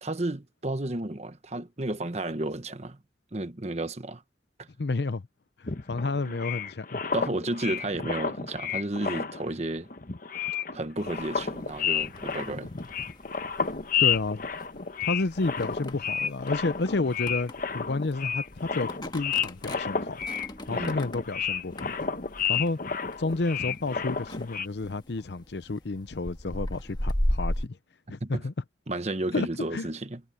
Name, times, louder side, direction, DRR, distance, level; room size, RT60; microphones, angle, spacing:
voice 1, 0.0-3.0 3.3-4.2 4.6-4.7 6.3-6.4 7.1-9.9 10.7-12.7 20.7-21.1 28.2-28.4 28.9-30.2, right 2 dB, 40° right, 1.2 m, -32 dB
voice 2, 4.8-5.2 5.6-7.0 14.0-14.5 15.0-20.2 20.7-21.9 22.5-22.8 23.2-27.8 28.1-28.5 29.3-29.5 29.7-29.9, left 3 dB, 70° left, 0.7 m, -30 dB
sound 1, 5.7-9.6 9.9-24.7, left 6 dB, 50° left, 1.1 m, -31 dB
sound 2, 11.0-27.7, equal, 25° left, 1.6 m, -37 dB
head